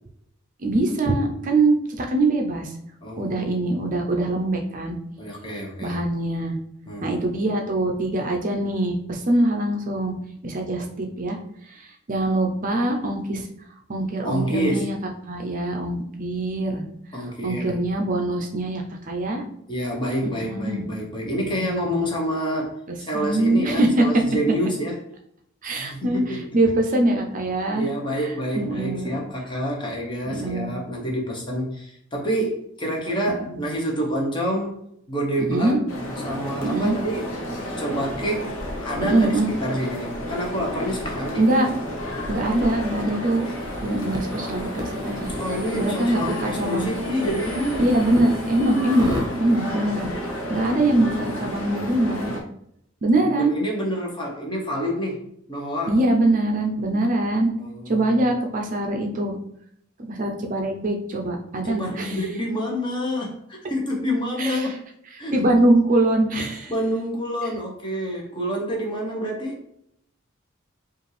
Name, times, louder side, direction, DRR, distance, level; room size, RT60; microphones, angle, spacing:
voice 1, 0.6-2.7 3.2-5.0 5.8-6.6 7.0-10.1 10.4-11.4 11.7-13.5 13.9-14.9 15.3-16.8 17.4-19.4 20.2-20.9 21.4-21.9 22.9-24.0 25.6-29.2 30.3-30.7 33.3-33.5 35.5-35.8 36.6-36.9 39.0-39.5 41.4-41.7 42.3-43.5 43.8-45.3 45.7-46.9 47.8-50.1 50.5-52.4 53.0-53.5 55.9-57.5 57.9-59.4 60.1-62.2 64.4-64.7 65.3-66.7 67.4-67.5, right 1 dB, 40° right, 2 dB, 0.5 m, -23 dB
voice 2, 3.0-3.6 5.2-6.0 6.9-7.2 14.2-14.9 17.1-17.8 19.7-25.1 25.8-26.4 27.7-35.8 36.2-37.4 37.8-38.5 38.8-41.4 45.3-47.9 53.2-55.2 55.5-56.0 57.6-58.3 61.7-64.8 65.2-65.3 66.7-69.6, equal, 25° left, -1 dB, 1.0 m, -28 dB
sound 1, 35.9-52.4, equal, 80° left, 0.9 m, -31 dB
sound 2, 43.2-49.3, left 1 dB, 20° right, 0.9 m, -36 dB
5.0 x 2.5 x 3.3 m, 0.73 s
head